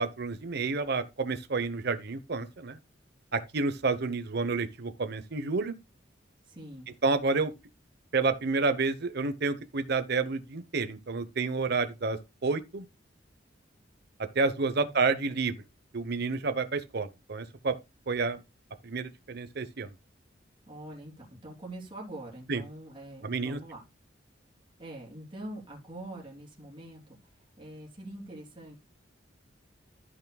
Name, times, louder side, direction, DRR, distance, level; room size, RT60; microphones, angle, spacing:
voice 1, 0.0-2.8 3.3-5.7 7.0-7.5 8.1-12.9 14.3-15.5 15.9-17.7 18.1-18.4 18.8-19.9 22.5-22.6 23.2-23.6, right 4 dB, 60° right, 0.9 m, -29 dB
voice 2, 6.5-6.9 14.6-15.0 20.7-23.8 24.8-27.0 27.6-28.7, right 1 dB, 25° right, 3.5 m, -44 dB
14.0 x 6.0 x 2.3 m
head